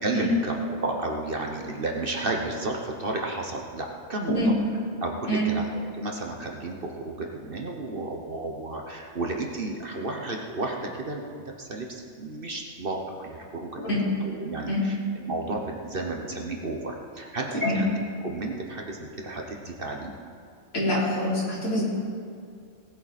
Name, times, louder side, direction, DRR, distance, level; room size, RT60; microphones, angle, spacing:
voice 1, 0.0-4.4 5.0-5.7 6.0-15.0 15.2-17.9 18.2-20.1, right 2 dB, 45° right, 1 dB, 1.2 m, -32 dB
voice 2, 4.3-4.6 5.3-5.5 13.8-14.0 14.6-14.9 17.5-17.9 20.7-21.9, left 1 dB, 75° left, -8 dB, 4.3 m, -25 dB
18.5 x 8.8 x 4.3 m, 2.4 s
omnidirectional pair, 1.5 m